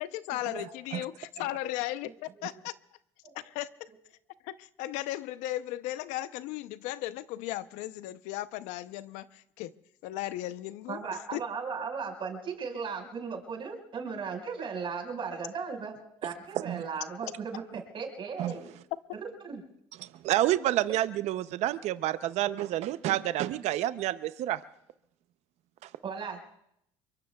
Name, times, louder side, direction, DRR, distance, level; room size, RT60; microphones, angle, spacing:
voice 1, 0.0-2.7 3.4-3.9 4.4-9.7 10.0-11.0 11.3-11.4, left 15 dB, 80° left, 14 dB, 0.7 m, -36 dB
voice 2, 10.9-18.7 19.1-19.6 26.0-26.4, right 5 dB, 45° right, 2 dB, 5.0 m, -37 dB
voice 3, 20.2-24.6, right 13 dB, 65° right, 13 dB, 0.6 m, -28 dB
27.0 x 23.0 x 2.3 m, 0.74 s
supercardioid pair, 95°, 12 cm